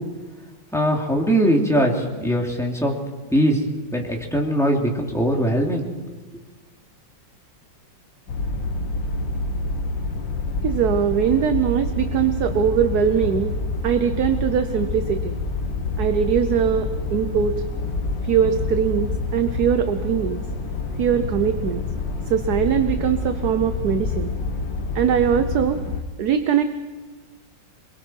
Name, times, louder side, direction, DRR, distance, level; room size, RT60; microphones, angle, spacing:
voice 1, 0.7-2.9 3.3-3.6 3.9-5.8, equal, ahead, -1 dB, 3.0 m, -21 dB
sound 1, 8.3-26.0, left 3 dB, 70° left, 2.3 m, -27 dB
voice 2, 10.6-13.5 13.8-15.4 16.0-17.6 18.2-20.4 21.0-21.8 22.3-24.3 24.9-25.8 26.2-26.6, right 8 dB, 60° right, 8 dB, 1.4 m, -21 dB
27.0 x 22.5 x 4.7 m, 1.4 s
omnidirectional pair, 2.1 m